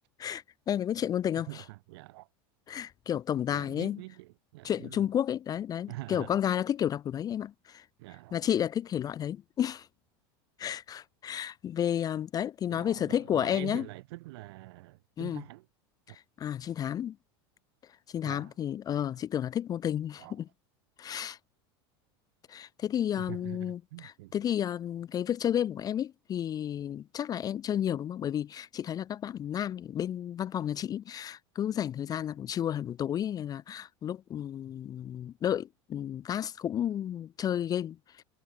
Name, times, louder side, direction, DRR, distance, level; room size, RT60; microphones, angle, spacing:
voice 1, 0.2-1.5 2.7-4.0 4.6-7.8 8.3-9.9 10.6-13.9 15.2-15.4 16.1-17.2 18.1-20.5 21.0-21.4 22.5-38.0, left 10 dB, 30° left, 0.5 m, -32 dB
voice 2, 1.4-2.3 3.5-5.0 5.9-6.4 8.0-8.4 12.7-15.7 16.1-16.2 18.2-18.5 20.2-20.4 23.2-24.4, right 21 dB, 75° right, 2.1 m, -45 dB
supercardioid pair, 120°, 13 cm